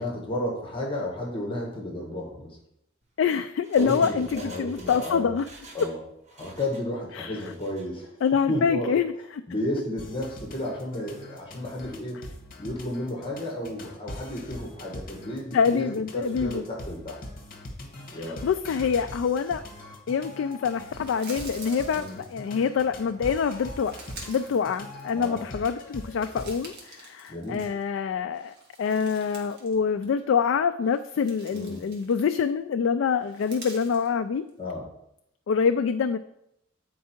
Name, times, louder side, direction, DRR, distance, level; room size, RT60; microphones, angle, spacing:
voice 1, 0.0-2.6 3.8-5.3 5.7-6.0 6.3-8.1 8.5-8.9 9.5-12.3 12.6-17.2 18.1-18.4 21.9-22.2 25.1-25.4 27.3-27.7 31.5-31.8 34.6-34.9, left 1 dB, 25° left, -1 dB, 1.4 m, -32 dB
Engine, 3.0-6.0 6.2-6.9 7.3-7.9 8.2-8.3, right 2 dB, 35° right, 1.2 m, -48 dB
voice 2, 3.2-5.4 7.2-7.4 8.2-9.1 15.5-16.6 18.4-19.6 20.1-23.9 24.3-34.4 35.5-36.2, left 6 dB, 65° left, 9 dB, 0.3 m, -25 dB
sound 1, 10.0-26.7, left 1 dB, 45° left, 1.2 m, -42 dB
sound 2, 20.7-22.7 23.4-25.4 25.8-28.0 28.3-29.8 30.0-30.2 30.8-32.5 33.2-34.1, right 3 dB, 55° right, 1.7 m, -47 dB
8.5 x 4.6 x 4.4 m, 0.78 s
head